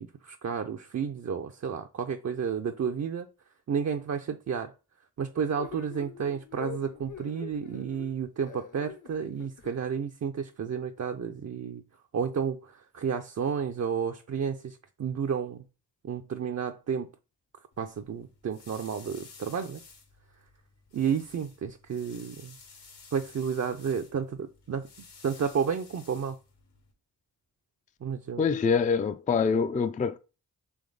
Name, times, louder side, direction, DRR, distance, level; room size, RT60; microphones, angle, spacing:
voice 1, 0.0-3.3 3.7-4.7 5.2-11.8 12.1-15.6 16.0-17.1 17.8-19.8 20.9-22.6 23.1-24.9 25.2-26.4 28.0-28.6, right 7 dB, 40° right, 0.5 m, -31 dB
sound 1, 5.6-9.7, left 7 dB, 50° left, 0.8 m, -44 dB
sound 2, 17.7-26.9, left 4 dB, 80° left, 1.7 m, -53 dB
voice 2, 28.4-30.2, left 5 dB, 20° left, 0.4 m, -25 dB
3.5 x 3.1 x 3.9 m
supercardioid pair, 45°, 40 cm